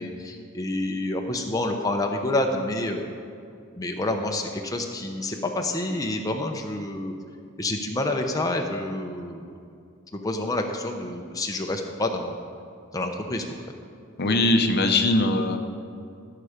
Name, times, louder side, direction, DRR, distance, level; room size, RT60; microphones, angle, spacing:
voice 1, 0.0-3.1 3.8-7.1 7.6-9.4 10.2-12.4 12.9-13.4, left 2 dB, 15° left, 2 dB, 0.7 m, -28 dB
voice 2, 14.2-15.6, left 2 dB, 50° left, 6 dB, 0.8 m, -21 dB
15.5 x 6.8 x 5.0 m, 2.4 s
head